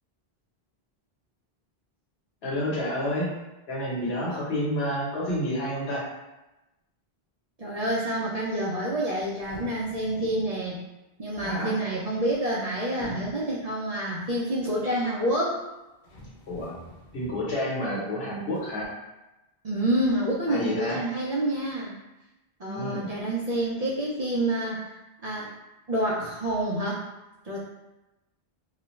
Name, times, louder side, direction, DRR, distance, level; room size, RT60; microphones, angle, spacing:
voice 1, 2.4-3.3 3.7-6.1 11.4-11.8 16.5-16.8 17.1-18.9 20.5-21.0 22.6-23.1, equal, 80° left, -5 dB, 1.1 m, -29 dB
voice 2, 7.6-10.8 11.2-15.6 19.6-21.9 22.6-25.0 25.2-25.5 25.9-27.0 27.4-27.6, right 1 dB, 50° right, -6 dB, 0.5 m, -28 dB
sound 1, 9.2-10.6 12.1-12.7 13.0-13.5 15.5-15.6 16.0-17.7 18.5-18.9, equal, 55° left, 0.7 m, -45 dB
2.4 x 2.2 x 3.0 m, 1.0 s
omnidirectional pair, 1.0 m